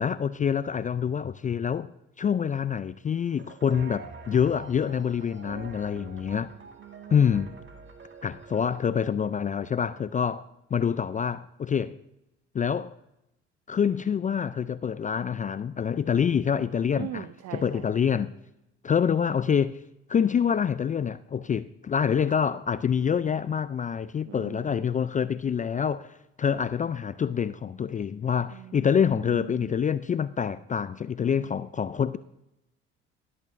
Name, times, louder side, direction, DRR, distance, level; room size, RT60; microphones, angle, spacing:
voice 1, 0.0-1.9 2.2-6.5 7.1-7.5 8.2-10.4 10.7-12.0 12.5-12.9 13.7-17.3 17.5-18.3 18.8-19.8 20.1-32.2, left 7 dB, 25° left, 0.4 m, -26 dB
sound 1, 3.4-8.9, right 4 dB, 35° right, 1.7 m, -46 dB
voice 2, 6.6-7.4 17.0-17.9 24.2-24.9 28.5-29.8, right 12 dB, 50° right, 0.6 m, -42 dB
20.5 x 8.6 x 2.6 m
hypercardioid pair, 65°, 33 cm